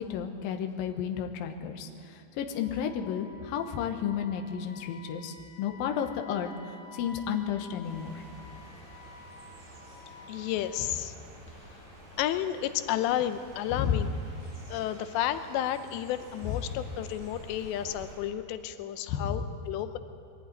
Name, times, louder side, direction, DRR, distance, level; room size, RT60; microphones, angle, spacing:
voice 1, 0.0-6.5 6.9-8.2 13.7-14.0 19.1-19.4, left 8 dB, 70° left, 4 dB, 2.6 m, -32 dB
Wind instrument woodwind instrument, 2.5-10.8, left 3 dB, 30° right, 5.5 m, -51 dB
sound 1, 7.8-18.2, right 1 dB, 55° right, 8.4 m, -50 dB
voice 2, 10.3-11.1 12.2-14.1 14.7-20.0, left 11 dB, 85° left, 10 dB, 3.0 m, -31 dB
22.0 x 14.0 x 9.4 m, 2.3 s
omnidirectional pair, 4.9 m